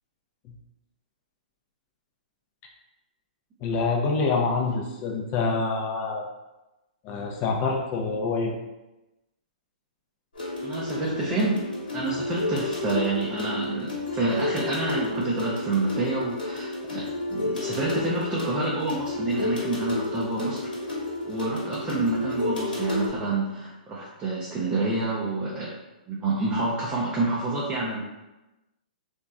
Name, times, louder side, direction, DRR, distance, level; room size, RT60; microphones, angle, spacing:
voice 1, 3.6-6.2 7.0-8.5, left 4 dB, 35° left, 0 dB, 0.6 m, -26 dB
sound 1, 10.3-23.1, left 2 dB, 80° left, 1.2 m, -31 dB
voice 2, 10.6-11.7 11.9-17.0 17.3-20.7 21.3-25.7 26.1-28.0, right 2 dB, 20° right, -6 dB, 0.5 m, -28 dB
2.9 x 2.5 x 2.3 m, 1.0 s
hypercardioid pair, 135°, 5 cm